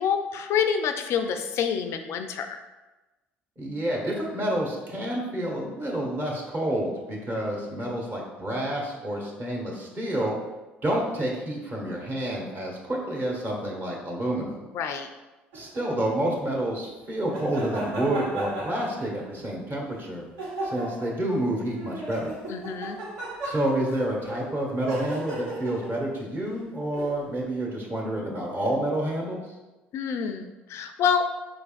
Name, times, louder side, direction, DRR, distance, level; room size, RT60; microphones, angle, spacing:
voice 1, 0.0-2.6 14.7-15.1 22.5-23.0 29.9-31.3, left 7 dB, 50° left, 7 dB, 0.3 m, -27 dB
voice 2, 3.6-10.4 10.8-14.6 15.5-20.2 20.6-22.3 23.4-29.5, right 1 dB, 30° right, -2 dB, 1.3 m, -29 dB
sound 1, 15.5-15.9 17.3-19.4 20.4-21.2 21.7-23.9 24.8-26.0 26.9-27.1, right 2 dB, 65° right, 1.1 m, -35 dB
5.0 x 3.3 x 2.5 m, 1.1 s
figure-of-eight pair, 55°, 6 cm